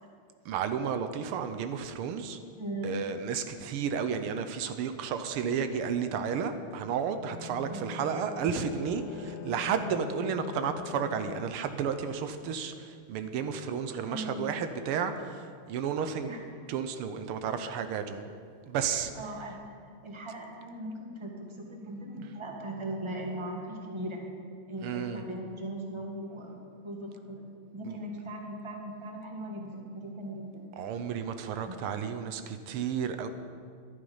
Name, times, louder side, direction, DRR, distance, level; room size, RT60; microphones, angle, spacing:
voice 1, 0.4-2.4 2.8-16.3 16.7-18.3 18.7-19.1 24.8-25.2 27.8-28.0 30.8-33.3, right 7 dB, 85° right, 9 dB, 1.7 m, -32 dB
voice 2, 2.6-3.0 7.7-7.8 14.0-14.4 16.3-16.4 19.1-19.6 20.0-24.3 24.7-27.4 27.7-30.7 31.7-31.8, right 1 dB, 15° right, 0 dB, 1.5 m, -39 dB
sound 1, 7.1-11.5, left 7 dB, 65° left, 0.9 m, -42 dB
13.0 x 11.5 x 5.5 m, 2.2 s
omnidirectional pair, 2.4 m